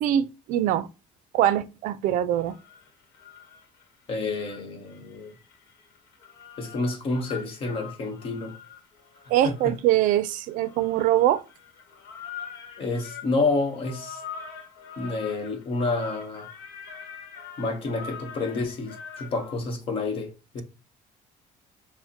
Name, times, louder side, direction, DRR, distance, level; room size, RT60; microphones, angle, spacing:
voice 1, 0.0-0.9 1.3-2.6 9.3-11.4, right 12 dB, 70° right, 0.4 m, -23 dB
sound 1, 2.3-3.8 4.2-19.5, left 6 dB, 80° left, 1.0 m, -44 dB
voice 2, 4.1-5.3 6.6-8.6 9.4-9.7 12.8-14.2 15.0-16.5 17.6-20.6, left 3 dB, 40° left, 1.0 m, -29 dB
6.3 x 2.1 x 2.8 m
cardioid pair, 155°, 14 cm